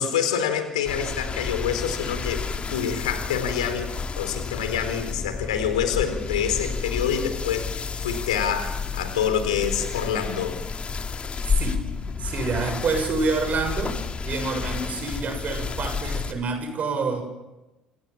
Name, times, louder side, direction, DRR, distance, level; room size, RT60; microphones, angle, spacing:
voice 1, 0.0-10.6, left 8 dB, 75° left, 8 dB, 4.2 m, -27 dB
sound 1, 0.8-16.3, left 5 dB, 30° left, 2.8 m, -31 dB
voice 2, 12.2-17.2, right 4 dB, 45° right, 8 dB, 7.6 m, -27 dB
29.0 x 26.5 x 7.3 m, 1.0 s
figure-of-eight pair, 55°, 4 cm